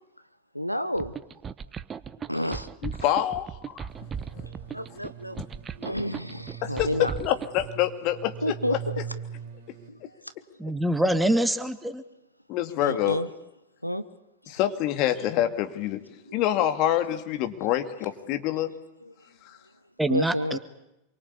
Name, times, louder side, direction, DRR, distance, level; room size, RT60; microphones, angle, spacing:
voice 1, 0.5-1.1 2.2-2.7 4.7-5.4 5.8-7.1 8.4-8.8 9.9-10.0 12.8-13.3 13.8-14.0 16.3-16.4 16.8-16.9 19.0-19.1 20.1-20.6, equal, 90° left, 13 dB, 1.0 m, -30 dB
sound 1, 1.0-7.7, right 7 dB, 20° right, 1.0 m, -37 dB
voice 2, 2.8-3.8 4.3-4.5 6.6-8.8 12.5-13.2 14.5-16.0 16.3-18.7 19.4-19.5, left 12 dB, 40° left, 8 dB, 2.4 m, -26 dB
sound 2, 3.9-9.9, right 8 dB, 50° right, 3.9 m, -41 dB
voice 3, 10.6-12.0 20.0-20.6, right 1 dB, 5° right, 10 dB, 1.7 m, -25 dB
27.5 x 23.5 x 8.5 m, 0.89 s
figure-of-eight pair, 90°, 0 cm